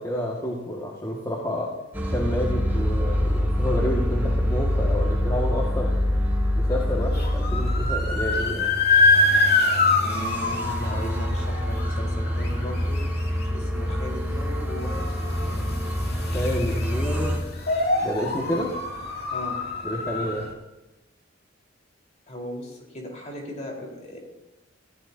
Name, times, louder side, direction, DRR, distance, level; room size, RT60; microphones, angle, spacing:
voice 1, 0.0-1.7 2.0-5.9 6.6-8.8 16.3-17.4 18.0-18.7 19.8-20.5, equal, 20° left, -4 dB, 1.9 m, -29 dB
sound 1, 1.9-9.7 10.1-17.4, equal, 10° right, 2.7 m, -26 dB
sound 2, 6.9-20.5, left 3 dB, 50° left, 2.7 m, -25 dB
voice 2, 9.9-13.1 13.5-15.7 18.4-18.6 19.3-19.6 22.3-24.2, equal, 35° left, -1 dB, 4.3 m, -37 dB
25.5 x 15.5 x 2.8 m, 0.99 s
head